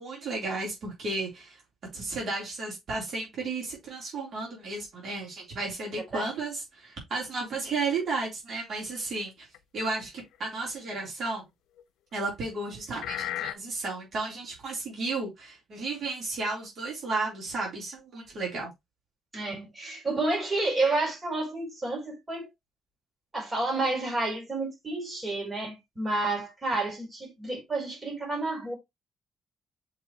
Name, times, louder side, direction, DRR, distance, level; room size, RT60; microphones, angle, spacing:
voice 1, 0.0-1.6 1.9-9.5 9.7-11.4 12.1-18.7, right 3 dB, 55° right, 3.9 m, -33 dB
sound 1, 7.7-8.0 9.5-9.6 10.2-10.3 11.8-11.9 13.0-13.5, left 13 dB, 85° left, 0.5 m, -33 dB
voice 2, 19.3-22.5 23.3-28.7, right 2 dB, 25° right, 4.7 m, -30 dB
7.2 x 4.6 x 3.1 m
cardioid pair, 90°, 0 cm